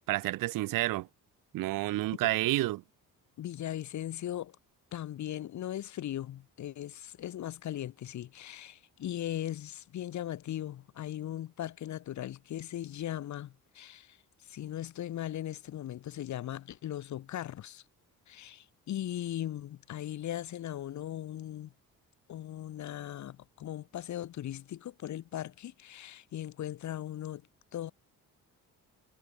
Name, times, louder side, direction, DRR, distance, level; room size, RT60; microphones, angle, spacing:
voice 1, 0.1-1.1 1.5-2.8, right 17 dB, 70° right, 0.5 m, -29 dB
voice 2, 3.4-4.6 4.9-14.2 14.4-17.8 18.3-21.7 22.3-27.4 27.7-27.9, left 12 dB, 55° left, 0.8 m, -38 dB
cardioid pair, 95°, 34 cm